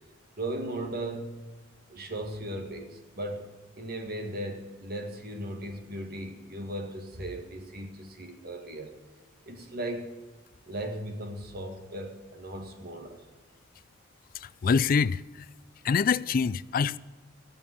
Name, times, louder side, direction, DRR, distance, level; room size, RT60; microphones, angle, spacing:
voice 1, 0.4-1.3 1.9-3.5 3.8-8.9 9.5-10.2 10.7-13.2, right 1 dB, 50° right, 1.9 m, -37 dB
voice 2, 14.3-15.5 15.8-17.0, left 6 dB, 45° left, 0.3 m, -25 dB
15.0 x 7.1 x 9.7 m
head